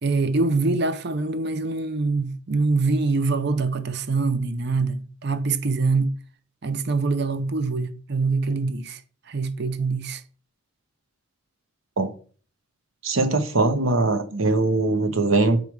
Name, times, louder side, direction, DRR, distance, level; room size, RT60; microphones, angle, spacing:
voice 1, 0.0-6.1 6.6-9.0 9.3-10.2, right 3 dB, 50° right, 0.6 m, -24 dB
voice 2, 13.0-15.6, right 2 dB, 75° right, 1.1 m, -21 dB
6.8 x 4.7 x 4.7 m
head